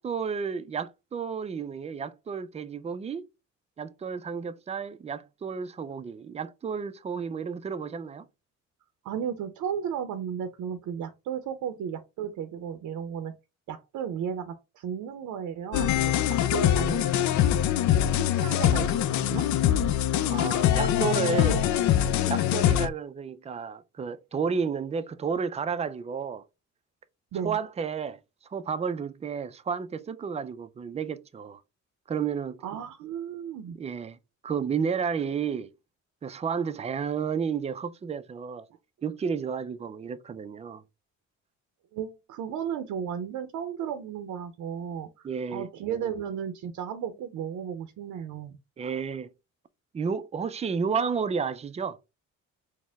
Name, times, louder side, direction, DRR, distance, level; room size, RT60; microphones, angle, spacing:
voice 1, 0.0-3.3 3.8-8.2 20.3-21.7 22.3-26.4 27.4-28.2 28.5-31.6 32.1-32.6 33.8-34.2 34.4-35.7 36.2-38.7 39.0-40.8 45.2-45.7 48.8-49.3 49.9-52.0, right 6 dB, 20° right, 0.4 m, -31 dB
voice 2, 9.0-13.3 13.7-17.5 18.1-19.5 27.3-27.6 32.6-33.8 41.9-48.6, right 8 dB, 80° right, 0.6 m, -34 dB
sound 1, 15.7-22.9, left 11 dB, 70° left, 0.4 m, -23 dB
4.2 x 2.1 x 3.4 m
cardioid pair, 90°, 30 cm